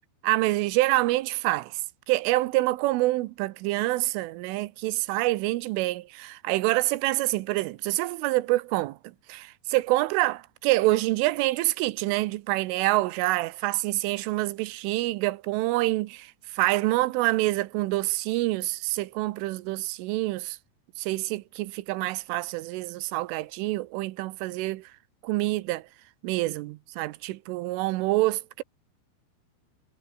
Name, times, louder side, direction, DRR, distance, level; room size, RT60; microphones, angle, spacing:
voice 1, 0.2-1.8 2.1-9.0 9.3-16.3 16.5-20.6 21.0-24.8 25.2-25.8 26.2-28.6, right 19 dB, 85° right, 3.4 m, -26 dB
omnidirectional pair, 5.7 m